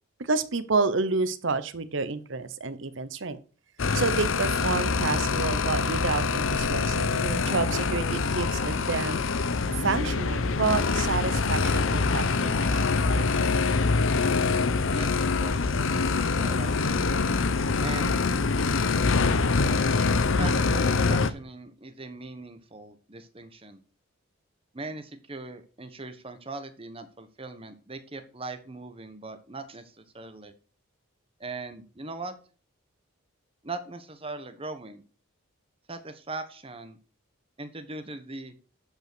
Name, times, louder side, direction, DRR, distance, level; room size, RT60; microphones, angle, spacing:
voice 1, 0.2-3.4 3.9-9.2 9.7-13.3, right 4 dB, 60° right, 13 dB, 0.9 m, -29 dB
sound 1, 3.8-21.3, left 4 dB, 65° left, 0.7 m, -25 dB
voice 2, 14.9-15.7 16.3-17.1 17.8-18.2 20.3-23.8 24.7-30.5 31.4-32.4 33.6-35.0 35.9-37.0 37.6-38.6, right 3 dB, 25° right, 9 dB, 1.1 m, -40 dB
12.0 x 5.5 x 6.1 m, 0.40 s
head